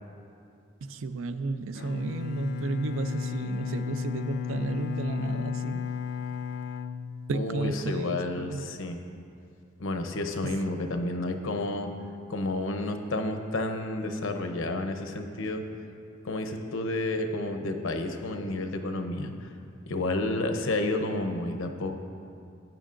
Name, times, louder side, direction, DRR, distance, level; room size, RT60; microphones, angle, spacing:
voice 1, 0.8-5.9 7.3-8.6 10.4-10.5, right 3 dB, 90° right, 11 dB, 0.4 m, -32 dB
Bowed string instrument, 1.7-7.8, left 7 dB, 55° left, 0.3 m, -34 dB
voice 2, 7.3-9.0 9.8-11.9 12.3-15.6 16.2-19.5 19.9-21.9, left 2 dB, 85° left, 5 dB, 0.7 m, -30 dB
15.0 x 8.9 x 2.5 m, 2.5 s
head